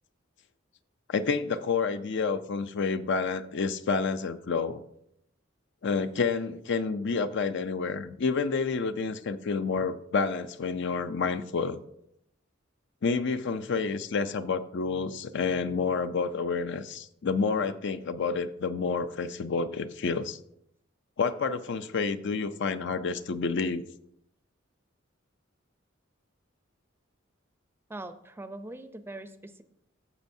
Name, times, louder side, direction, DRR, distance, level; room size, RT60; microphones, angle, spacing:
voice 1, 1.1-4.8 5.8-11.8 13.0-20.4 21.2-23.9, left 4 dB, 60° left, 11 dB, 0.5 m, -29 dB
voice 2, 27.9-29.6, right 2 dB, 10° right, 10 dB, 0.5 m, -42 dB
15.5 x 7.2 x 2.7 m, 0.77 s
head